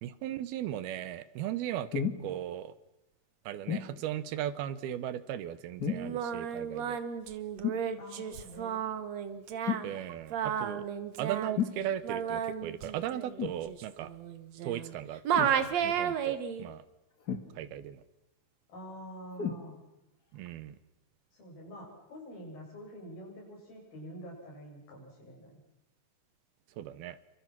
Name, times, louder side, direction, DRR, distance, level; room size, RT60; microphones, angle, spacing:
voice 1, 0.0-2.7 3.5-7.0 9.8-10.9 11.2-14.1 14.6-16.8 17.6-18.0 20.3-20.8 26.8-27.2, right 11 dB, 80° right, 14 dB, 2.9 m, -37 dB
sound 1, 1.9-2.3 3.7-3.9 5.8-6.2 7.6-7.9 9.7-9.9 11.6-11.8 13.4-13.6 15.3-15.6 17.3-17.8 19.4-19.6 20.5-20.6, left 7 dB, 45° left, 1.3 m, -33 dB
Singing, 5.9-14.9 15.2-16.7, right 8 dB, 60° right, 2.0 m, -33 dB
voice 2, 8.0-8.8 18.7-19.8 21.3-25.5, equal, 65° left, -1 dB, 9.5 m, -47 dB
29.0 x 25.5 x 6.0 m, 0.90 s
omnidirectional pair, 4.5 m